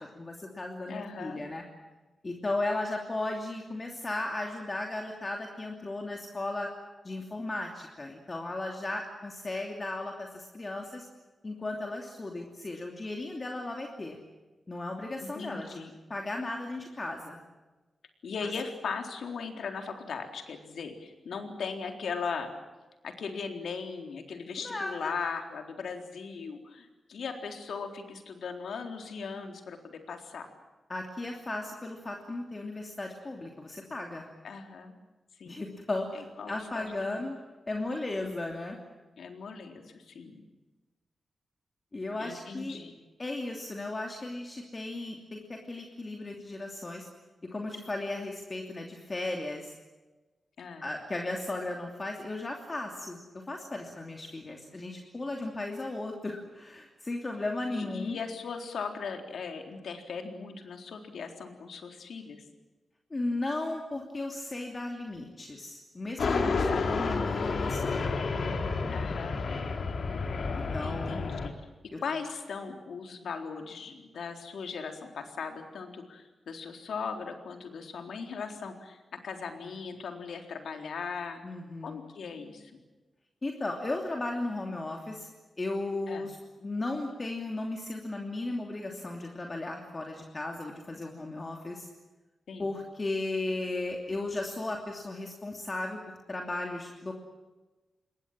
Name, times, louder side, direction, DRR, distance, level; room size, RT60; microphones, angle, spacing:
voice 1, 0.1-1.6 2.2-6.7 7.0-11.1 11.4-14.2 14.7-15.8 16.1-17.4 18.4-18.5 24.6-25.1 30.9-34.3 35.4-37.3 37.7-38.8 41.9-42.8 43.2-47.1 47.5-49.7 50.8-58.2 63.1-68.2 70.5-71.3 71.9-72.0 81.4-82.0 83.4-85.3 85.6-86.4 86.6-91.9 92.6-96.0 96.3-97.1, left 2 dB, 25° left, 1 dB, 2.9 m, -35 dB
voice 2, 0.9-1.4 15.2-15.9 18.2-22.5 23.0-30.5 34.4-34.9 35.4-35.6 36.1-37.2 39.2-40.4 42.2-43.0 50.6-50.9 57.7-62.4 66.4-66.9 68.9-69.4 70.8-71.5 72.0-81.4 81.8-82.7 86.1-86.3 92.5-92.7, left 5 dB, 80° left, 5 dB, 3.9 m, -38 dB
sound 1, 66.2-71.5, left 4 dB, 60° left, 2.9 m, -30 dB
26.5 x 21.5 x 7.6 m, 1.2 s
wide cardioid pair, 140°, 0 cm